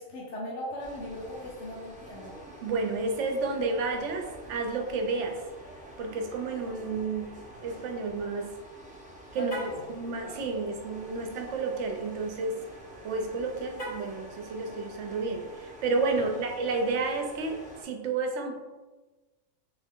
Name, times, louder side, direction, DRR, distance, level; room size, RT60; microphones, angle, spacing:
voice 1, 0.0-2.3 9.4-9.9 16.3-16.4, left 1 dB, 60° left, -4 dB, 1.0 m, -38 dB
sound 1, 0.8-17.8, right 1 dB, 10° right, 0.6 m, -48 dB
voice 2, 2.6-5.4 6.0-7.3 7.6-8.5 9.3-9.5 9.9-12.6 13.0-18.6, right 3 dB, 65° right, 4 dB, 0.9 m, -31 dB
Car, 9.4-9.9 13.7-14.2, right 1 dB, 90° left, 2.1 m, -38 dB
3.7 x 3.3 x 3.6 m, 1.2 s
omnidirectional pair, 1.4 m